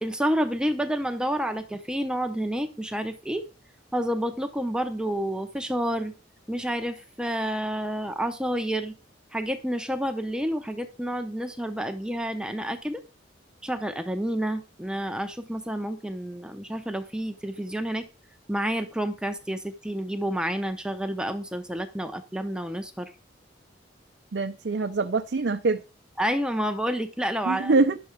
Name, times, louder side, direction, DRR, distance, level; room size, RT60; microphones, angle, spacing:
voice 1, 0.0-3.4 3.9-6.1 6.5-8.9 9.3-13.0 13.6-18.1 18.5-23.1 26.2-27.7, equal, 5° right, 0.6 m, -29 dB
voice 2, 24.3-25.8 27.5-28.0, right 3 dB, 65° right, 0.5 m, -24 dB
10.5 x 6.9 x 4.6 m
head